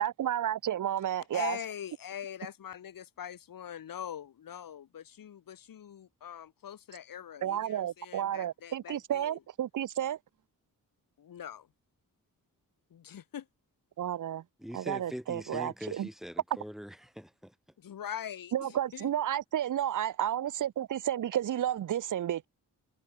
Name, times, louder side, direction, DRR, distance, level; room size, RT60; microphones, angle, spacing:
voice 1, 0.0-1.6 7.4-10.2 14.0-14.4 14.7-16.1 18.5-22.5, right 11 dB, 65° right, 0.9 m, -31 dB
voice 2, 1.3-9.4 11.2-11.7 12.9-13.5 17.8-19.1, left 9 dB, 80° left, 2.9 m, -43 dB
voice 3, 14.6-17.5, equal, ahead, 7.8 m, -42 dB
wide cardioid pair, 125°, 34 cm